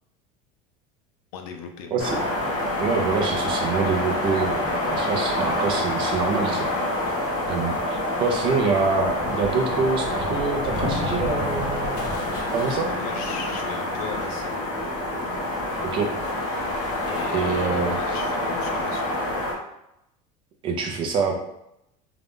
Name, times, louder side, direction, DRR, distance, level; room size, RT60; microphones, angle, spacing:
voice 1, 1.3-2.0 12.9-14.6 16.6-19.4, left 5 dB, 80° left, 4 dB, 0.7 m, -38 dB
voice 2, 1.9-2.5 2.8-6.7 7.5-12.1 12.5-12.9 15.8-16.1 17.3-18.0 20.6-21.4, right 4 dB, 30° right, 2 dB, 0.5 m, -26 dB
sound 1, 2.0-19.5, left 1 dB, 55° left, 1.3 m, -27 dB
3.8 x 2.3 x 3.6 m, 0.83 s
cardioid pair, 180°, 18 cm